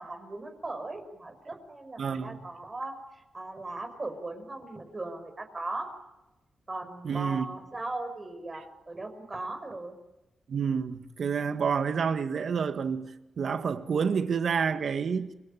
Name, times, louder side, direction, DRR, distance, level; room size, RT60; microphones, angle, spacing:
voice 1, 0.0-5.9 6.7-10.0, right 2 dB, 25° right, 5.6 m, -38 dB
voice 2, 2.0-2.4 7.0-7.5 10.5-15.3, right 6 dB, 60° right, 1.8 m, -29 dB
29.5 x 22.0 x 8.7 m
cardioid pair, 100°, 0 cm